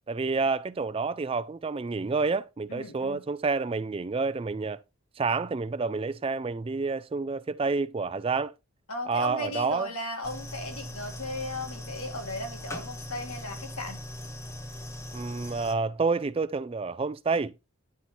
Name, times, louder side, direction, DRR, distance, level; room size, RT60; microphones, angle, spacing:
voice 1, 0.1-4.8 5.2-8.5 9.1-9.9 15.1-17.5, right 4 dB, 25° right, 0.3 m, -29 dB
voice 2, 2.7-3.2 8.9-14.0, left 1 dB, 80° left, 2.1 m, -36 dB
sound 1, 10.2-15.7, left 1 dB, 10° left, 0.6 m, -40 dB
9.6 x 4.2 x 4.3 m
head